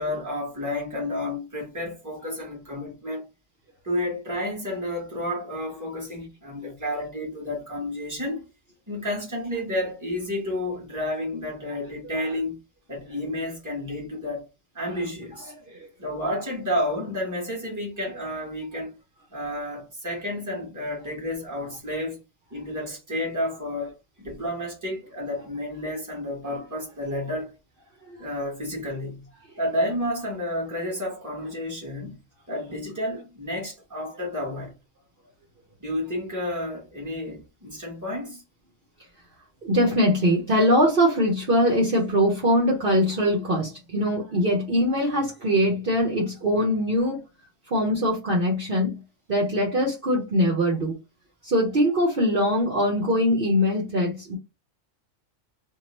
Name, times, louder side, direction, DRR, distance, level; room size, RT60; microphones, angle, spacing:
voice 1, 0.0-3.3 3.8-8.4 8.9-12.6 12.9-14.5 14.7-15.5 16.0-19.0 19.3-22.2 22.5-27.5 28.2-29.3 29.6-32.2 32.5-34.7 35.8-38.4, left 1 dB, 15° right, 1.2 m, -31 dB
voice 2, 39.6-47.2 47.7-49.0 49.3-51.0 51.4-54.4, equal, 50° right, 0.9 m, -22 dB
2.8 x 2.2 x 2.9 m
omnidirectional pair, 1.3 m